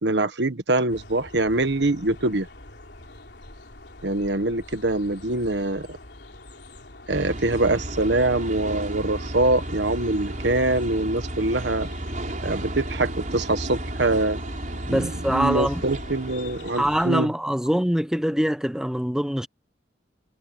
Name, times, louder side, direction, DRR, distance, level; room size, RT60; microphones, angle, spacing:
voice 1, 0.0-2.5 4.0-5.9 7.1-11.9 12.4-14.4 14.9-17.3, right 2 dB, 85° right, 1.5 m, -24 dB
sound 1, 0.9-17.1, left 2 dB, 70° left, 4.0 m, -45 dB
sound 2, 7.1-17.1, right 1 dB, 50° right, 4.8 m, -33 dB
voice 2, 14.9-15.8 16.8-19.5, equal, 5° right, 0.8 m, -24 dB
head